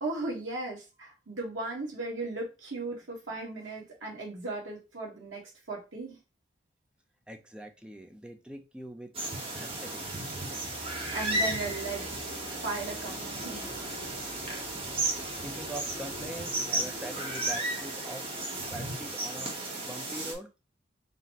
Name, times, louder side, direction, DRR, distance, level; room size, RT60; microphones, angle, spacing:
voice 1, 0.0-6.2 11.1-13.7, right 2 dB, 85° right, 1.4 m, -37 dB
voice 2, 7.3-9.1 9.5-10.3 15.4-18.3 18.6-19.5 19.8-20.5, right 1 dB, 5° right, 0.4 m, -43 dB
sound 1, 9.1-20.3, right 2 dB, 30° right, 0.9 m, -34 dB
sound 2, 10.0-19.0, left 1 dB, 40° left, 1.1 m, -48 dB
4.0 x 2.1 x 4.1 m
head